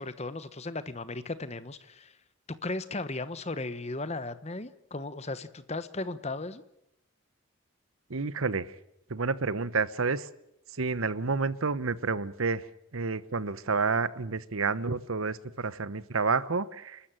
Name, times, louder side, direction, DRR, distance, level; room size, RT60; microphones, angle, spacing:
voice 1, 0.0-2.1 2.5-6.6, left 2 dB, 30° left, 13 dB, 1.1 m, -36 dB
voice 2, 8.1-8.7 9.1-10.3 10.7-17.1, right 4 dB, 80° right, 16 dB, 1.0 m, -30 dB
29.0 x 13.0 x 9.0 m, 0.82 s
head